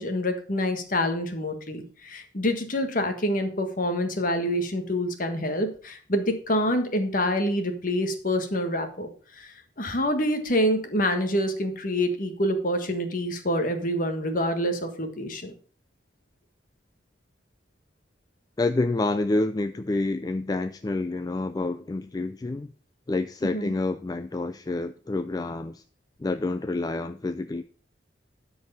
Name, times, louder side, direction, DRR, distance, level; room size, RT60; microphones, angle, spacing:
voice 1, 0.0-15.5 23.4-23.7, equal, 50° left, 6 dB, 1.5 m, -27 dB
voice 2, 18.6-22.7 23.1-25.8 26.2-27.6, left 2 dB, 20° left, 10 dB, 0.3 m, -28 dB
12.5 x 4.8 x 5.4 m, 0.42 s
head